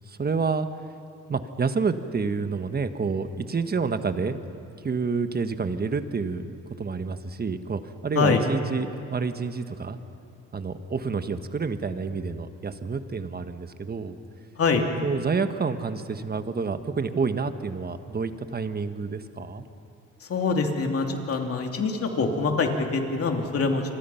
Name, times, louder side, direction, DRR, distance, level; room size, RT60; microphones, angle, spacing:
voice 1, 0.1-0.7 1.3-4.4 4.8-10.0 10.5-14.1 15.0-19.6, right 4 dB, 30° right, 9 dB, 1.3 m, -28 dB
voice 2, 20.2-23.8, left 4 dB, 50° left, 3 dB, 2.9 m, -24 dB
28.5 x 24.0 x 5.8 m, 2.6 s
cardioid pair, 90°, 30 cm